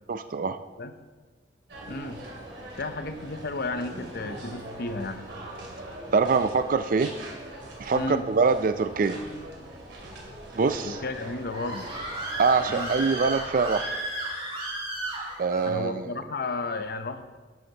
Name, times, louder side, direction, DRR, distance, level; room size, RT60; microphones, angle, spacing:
voice 1, 0.1-0.6 6.1-7.1 7.8-9.2 10.5-11.0 12.4-14.0 15.4-16.1, right 4 dB, 50° right, 10 dB, 0.4 m, -24 dB
sound 1, 1.7-13.4, right 1 dB, 70° right, 2.5 m, -42 dB
voice 2, 1.9-2.2 2.8-5.2 7.9-8.3 10.8-11.9 12.7-12.9 15.6-17.4, left 3 dB, 55° left, 9 dB, 0.7 m, -33 dB
sound 2, 9.1-10.2, equal, 25° left, 0.8 m, -45 dB
Screaming, 11.2-15.7, right 1 dB, 30° right, 2.8 m, -34 dB
11.5 x 11.0 x 2.9 m, 1.3 s
head